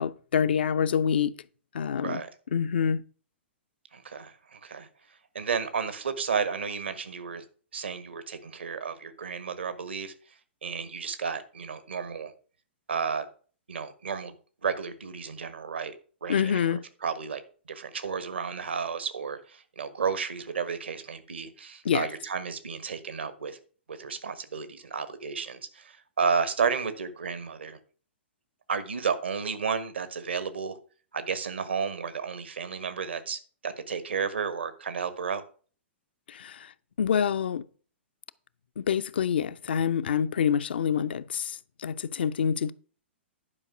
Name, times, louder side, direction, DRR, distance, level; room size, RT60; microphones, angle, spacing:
voice 1, 0.0-1.4 1.7-2.2 2.5-3.0 16.3-16.8 21.8-22.1 36.3-36.7 37.0-37.6 38.8-42.7, left 7 dB, 60° left, 0.6 m, -26 dB
voice 2, 3.9-4.9 5.3-7.4 7.7-10.1 10.6-12.3 12.9-13.3 13.7-14.3 14.6-15.9 16.2-17.4 17.7-23.6 23.9-27.8 28.7-30.8 31.1-35.4, right 6 dB, 65° right, 1.4 m, -32 dB
11.0 x 5.3 x 5.8 m
figure-of-eight pair, 110°, 6 cm